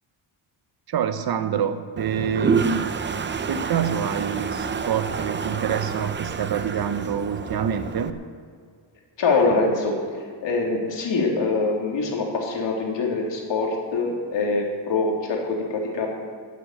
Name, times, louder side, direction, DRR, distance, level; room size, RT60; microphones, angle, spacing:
voice 1, 0.9-3.0 3.5-8.2, right 8 dB, 50° right, 10 dB, 1.0 m, -26 dB
Toilet flush, 2.0-8.1, right 5 dB, 25° right, 0.5 m, -28 dB
voice 2, 9.2-9.9 10.4-16.1, left 3 dB, 60° left, -1 dB, 3.3 m, -24 dB
13.0 x 8.4 x 9.1 m, 2.1 s
wide cardioid pair, 165°, 48 cm